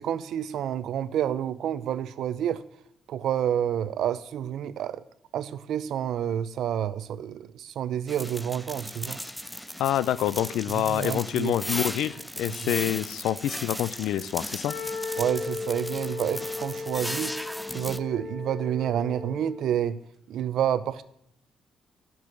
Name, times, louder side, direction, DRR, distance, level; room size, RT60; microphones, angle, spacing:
voice 1, 0.0-2.6 3.1-5.0 5.3-9.2 10.7-11.5 12.5-12.7 15.2-17.4 17.7-20.0 20.3-21.0, right 10 dB, 70° right, 14 dB, 0.6 m, -29 dB
sound 1, 8.1-18.0, equal, ahead, 0.4 m, -37 dB
voice 2, 9.8-14.7, left 12 dB, 90° left, 18 dB, 0.4 m, -27 dB
Wind instrument woodwind instrument, 14.6-19.8, left 4 dB, 35° left, 1.5 m, -36 dB
13.5 x 6.2 x 6.2 m, 0.74 s
cardioid pair, 135°, 0 cm